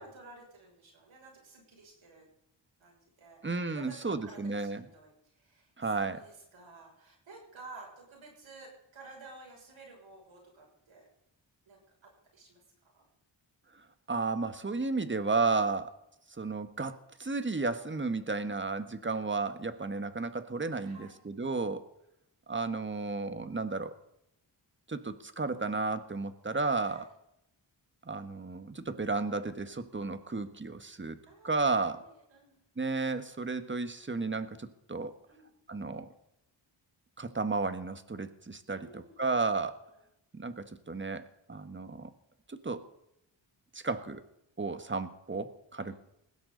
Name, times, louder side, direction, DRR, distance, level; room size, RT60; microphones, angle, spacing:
voice 1, 0.0-2.3 2.8-3.4 3.7-11.1 11.7-13.1 20.8-21.3 26.8-27.1 31.3-32.6 35.3-35.5 38.7-39.5 45.8-46.0, right 3 dB, 90° right, -1 dB, 6.6 m, -53 dB
voice 2, 3.4-4.8 5.8-6.2 14.1-15.9 16.4-21.8 22.5-23.9 24.9-27.1 28.0-31.2 31.4-32.0 32.8-35.2 35.7-36.1 37.2-39.8 40.3-42.1 42.5-42.8 43.7-44.2 44.6-46.0, right 3 dB, 25° right, 10 dB, 1.5 m, -33 dB
20.0 x 16.0 x 4.0 m, 0.81 s
cardioid pair, 70°, 46 cm